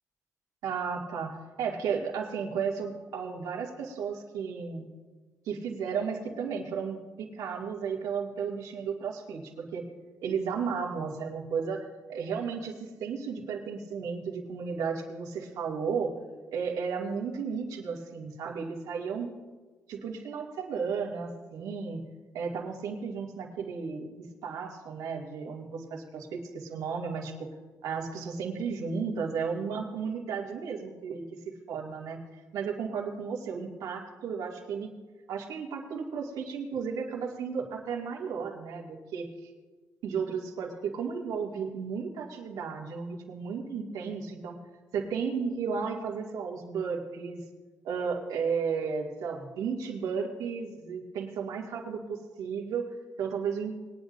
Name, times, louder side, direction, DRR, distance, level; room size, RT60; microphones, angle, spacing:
voice 1, 0.6-4.9 5.5-9.8 10.2-16.1 16.5-19.3 19.9-22.0 22.3-27.5 27.8-34.9 35.3-39.3 40.0-44.6 44.9-47.4 47.8-53.7, right 6 dB, 85° right, 0 dB, 2.2 m, -34 dB
21.0 x 10.5 x 2.6 m, 1.3 s
cardioid pair, 120°, 6 cm